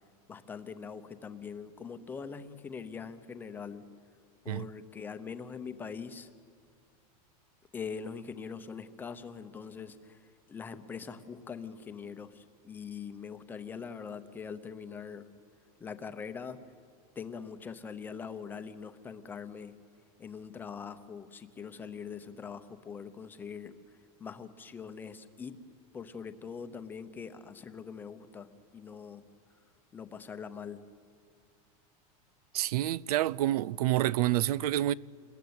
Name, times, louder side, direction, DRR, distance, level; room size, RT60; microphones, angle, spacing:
voice 1, 0.3-3.8 4.4-6.3 7.7-15.3 15.8-16.6 17.2-19.7 20.2-23.7 24.2-25.6 25.9-29.2 29.9-30.8, left 6 dB, 10° left, 0.8 m, -42 dB
voice 2, 32.5-34.9, right 14 dB, 85° right, 0.6 m, -28 dB
27.5 x 22.0 x 9.5 m
supercardioid pair, 180°, 19 cm